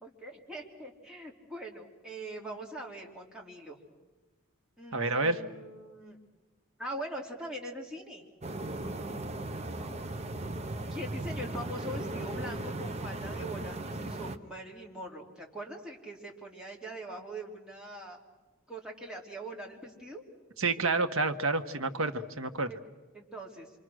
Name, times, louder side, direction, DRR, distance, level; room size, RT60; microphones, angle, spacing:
voice 1, 0.0-3.7 4.8-6.2 6.8-8.3 9.8-10.0 10.9-18.2 18.7-20.2 22.7-22.8 23.1-23.7, right 1 dB, 5° right, -2 dB, 3.2 m, -42 dB
voice 2, 4.9-5.4 20.6-22.7, right 3 dB, 75° right, 8 dB, 1.3 m, -29 dB
sound 1, 8.4-14.4, right 2 dB, 30° right, 0.9 m, -37 dB
27.0 x 25.5 x 6.4 m, 1.2 s
head